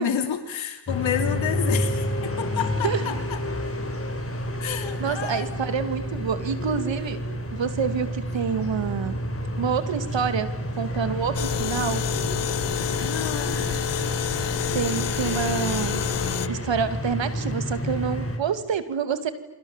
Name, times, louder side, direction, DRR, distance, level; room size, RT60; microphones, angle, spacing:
voice 1, 0.0-3.4 4.6-5.5 13.0-13.7, left 8 dB, 85° left, 7 dB, 3.0 m, -30 dB
sound 1, 0.9-18.4, equal, 30° left, 6.4 m, -29 dB
voice 2, 5.0-7.2 7.5-9.2 9.6-10.5 10.8-12.0 14.7-16.0 16.5-19.3, right 6 dB, 70° right, 10 dB, 2.6 m, -27 dB
sound 2, 11.3-16.5, left 13 dB, 65° left, 0.8 m, -29 dB
29.0 x 25.0 x 7.4 m, 1.0 s
supercardioid pair, 45°, 45 cm